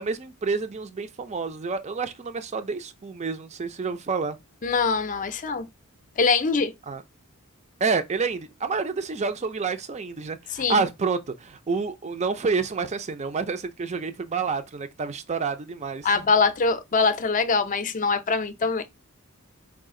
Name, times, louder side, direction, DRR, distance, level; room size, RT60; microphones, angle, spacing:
voice 1, 0.0-4.4 6.9-7.0 7.8-16.1, right 4 dB, 30° right, 0.4 m, -28 dB
voice 2, 4.6-5.7 6.2-6.7 10.5-10.8 16.0-18.8, left 4 dB, 35° left, 0.5 m, -23 dB
4.7 x 2.4 x 3.6 m
head